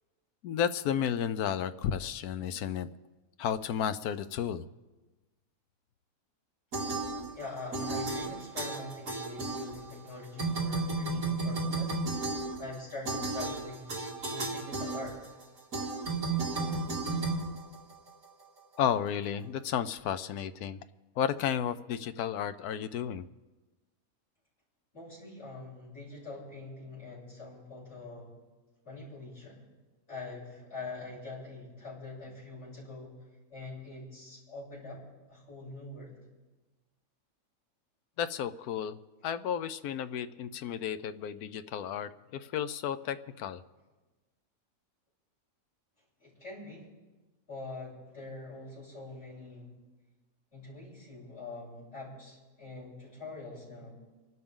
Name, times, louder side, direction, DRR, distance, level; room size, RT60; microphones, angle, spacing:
voice 1, 0.4-2.9 3.4-4.6 18.8-20.8 21.2-23.2 38.2-39.0 39.2-43.6, left 9 dB, 85° left, 11 dB, 1.2 m, -32 dB
sound 1, 6.7-7.5 7.7-10.1 10.4-18.2, right 3 dB, 70° right, 2.8 m, -33 dB
voice 2, 7.3-12.0 12.6-15.2 24.9-28.3 28.8-29.7 30.1-33.2 33.5-35.0 35.3-36.2 46.2-46.9 47.5-49.7 50.5-54.0, left 3 dB, 50° left, -8 dB, 7.7 m, -44 dB
29.0 x 12.0 x 3.7 m, 1.2 s
omnidirectional pair, 1.6 m